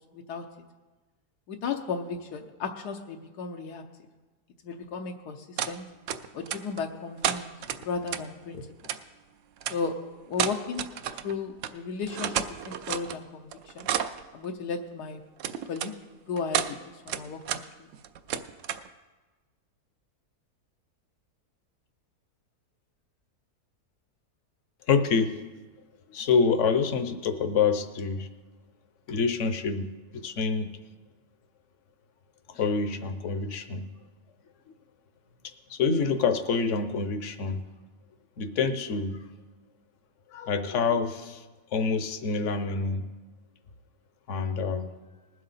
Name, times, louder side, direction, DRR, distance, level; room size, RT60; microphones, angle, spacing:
voice 1, 1.5-3.8 4.6-5.4 5.7-5.9 6.3-7.5 7.8-8.6 9.7-9.9 10.3-10.9 11.2-13.5 13.8-13.9 14.3-15.2 15.7-15.9 16.3-16.8 17.1-17.6, left 5 dB, 85° left, 3 dB, 1.4 m, -34 dB
sound 1, 5.6-5.7 6.1-6.8 7.2-8.2 8.8-9.0 9.6-9.8 10.3-11.3 11.6-11.7 12.0-13.2 13.5-14.2 15.4-15.9 16.4-16.7 17.1-17.6 17.9-18.9, right 9 dB, 65° right, 0.8 m, -31 dB
voice 2, 24.9-25.4 26.1-28.3 29.1-30.8 32.5-33.9 35.4-37.6 38.4-39.3 40.3-41.4 41.7-43.1 44.3-44.9, left 5 dB, 55° left, 10 dB, 1.0 m, -27 dB
20.0 x 7.7 x 4.1 m, 1.2 s
omnidirectional pair, 1.7 m